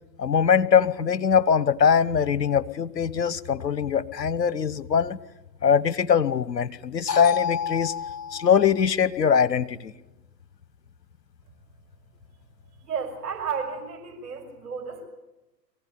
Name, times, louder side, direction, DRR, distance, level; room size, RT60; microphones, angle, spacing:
voice 1, 0.2-5.2 5.6-9.9, left 7 dB, 75° left, 15 dB, 1.2 m, -22 dB
voice 2, 12.8-15.1, right 6 dB, 65° right, 3 dB, 5.8 m, -32 dB
23.5 x 16.0 x 9.6 m, 1.0 s
figure-of-eight pair, 110°, 50 cm